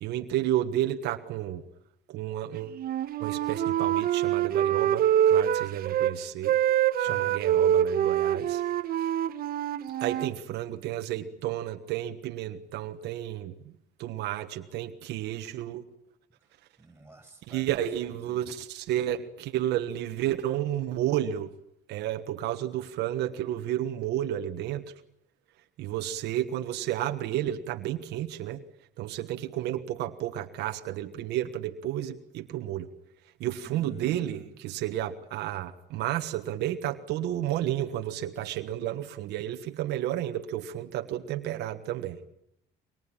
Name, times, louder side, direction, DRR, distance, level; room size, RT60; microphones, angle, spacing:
voice 1, 0.0-1.6 2.1-2.8 3.2-6.5 7.0-8.6 9.0-9.1 10.0-13.5 14.0-15.8 17.5-21.5 21.9-24.8 25.8-28.6 29.0-32.9 33.4-42.2, right 12 dB, 80° right, 6 dB, 1.5 m, -31 dB
Wind instrument woodwind instrument, 2.7-6.1 6.4-10.3, right 10 dB, 60° right, 1.2 m, -25 dB
voice 2, 7.0-7.5 16.8-18.4 33.6-34.6, right 2 dB, 10° right, 5 dB, 7.7 m, -51 dB
23.5 x 23.5 x 8.9 m, 0.77 s
cardioid pair, 110°, 17 cm